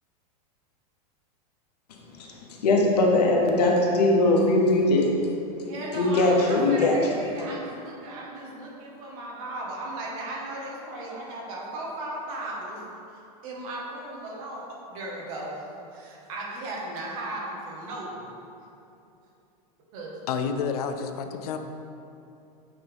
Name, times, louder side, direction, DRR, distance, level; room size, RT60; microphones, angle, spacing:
voice 1, 1.9-5.3 5.6-7.1, left 2 dB, 90° left, 0 dB, 1.0 m, -21 dB
voice 2, 5.6-12.8 13.4-18.4 19.9-20.2, right 1 dB, 60° right, -3 dB, 1.4 m, -36 dB
voice 3, 20.3-21.6, left 6 dB, 75° left, 7 dB, 0.5 m, -29 dB
7.8 x 3.5 x 3.5 m, 2.7 s
supercardioid pair, 130°, 20 cm